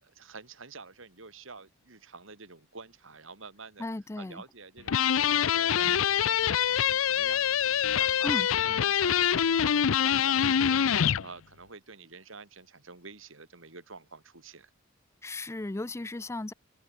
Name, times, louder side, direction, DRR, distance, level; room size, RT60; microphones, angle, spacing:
voice 1, 0.0-3.8 4.2-8.3 8.6-14.7, right 4 dB, 70° right, 3.3 m, -48 dB
voice 2, 3.8-4.4 8.2-8.5 15.2-16.5, left 2 dB, 15° left, 0.4 m, -35 dB
sound 1, 4.9-11.3, left 9 dB, 80° left, 0.5 m, -25 dB
head